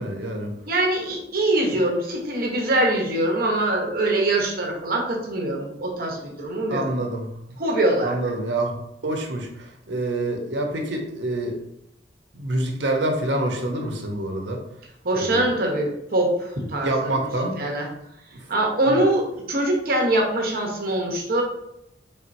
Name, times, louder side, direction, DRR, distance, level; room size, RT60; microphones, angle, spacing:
voice 1, 0.0-0.5 1.7-1.8 6.7-7.6 8.0-8.7 9.0-11.6 12.3-14.6 15.1-15.5 16.8-17.6 18.3-18.4 18.9-19.0, right 1 dB, 75° right, 3 dB, 0.8 m, -27 dB
voice 2, 0.7-6.8 7.6-8.1 15.0-17.2 17.6-17.9 18.5-21.4, right 1 dB, 55° right, 0 dB, 0.9 m, -23 dB
4.3 x 3.6 x 2.6 m, 0.81 s
head